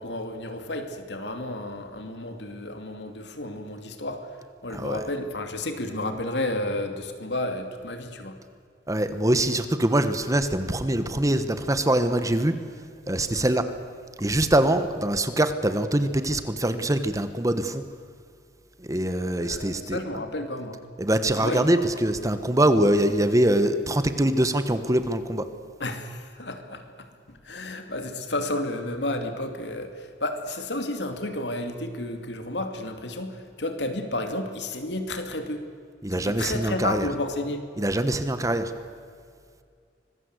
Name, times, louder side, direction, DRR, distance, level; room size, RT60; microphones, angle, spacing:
voice 1, 0.0-4.3 4.6-8.4 19.4-20.8 21.4-21.8 25.8-35.6 36.1-37.6, left 1 dB, 80° left, 6 dB, 2.6 m, -32 dB
voice 2, 4.7-5.0 8.9-12.6 13.1-13.6 14.2-17.8 18.9-20.0 21.0-25.5 36.0-37.1 37.8-38.7, right 1 dB, 20° right, 10 dB, 1.3 m, -23 dB
25.0 x 21.0 x 8.2 m, 2.2 s
head